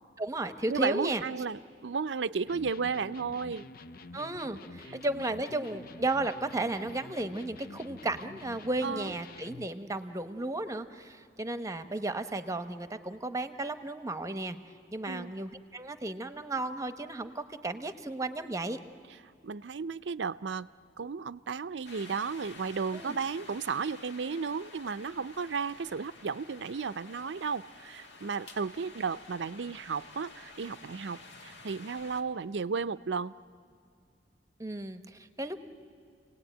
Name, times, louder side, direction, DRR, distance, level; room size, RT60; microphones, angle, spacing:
voice 1, 0.2-1.4 4.1-14.6 14.9-18.8 22.9-23.2 34.6-35.6, right 2 dB, 20° right, 10 dB, 0.9 m, -34 dB
voice 2, 0.7-3.6 4.9-5.3 8.8-9.1 15.0-15.3 19.4-20.7 21.0-33.3, right 5 dB, 90° right, 14 dB, 0.5 m, -34 dB
Electric guitar, 2.5-9.8, left 3 dB, 55° left, 0.7 m, -48 dB
sound 1, 21.8-32.2, left 3 dB, 70° left, 1.8 m, -51 dB
29.0 x 18.5 x 9.2 m, 2.3 s
head